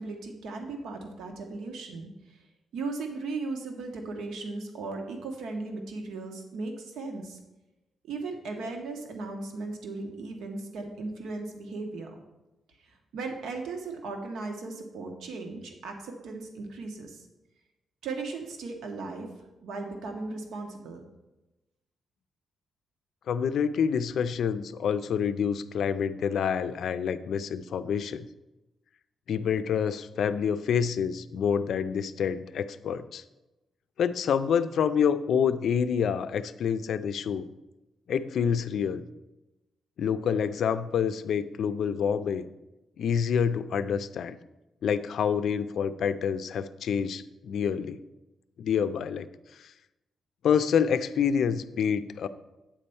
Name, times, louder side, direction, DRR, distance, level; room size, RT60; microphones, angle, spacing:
voice 1, 0.0-2.4 2.7-7.4 8.1-12.2 12.8-17.2 18.0-19.3 19.6-21.0, right 3 dB, 85° right, 3 dB, 1.1 m, -37 dB
voice 2, 23.3-28.3 29.3-33.2 34.0-37.5 38.1-39.0 40.0-42.4 43.0-44.4 44.8-48.0 48.6-49.3 49.6-49.7 50.4-52.3, left 7 dB, 60° left, 12 dB, 0.4 m, -27 dB
8.9 x 4.3 x 7.0 m, 1.0 s
wide cardioid pair, 175°, 0 cm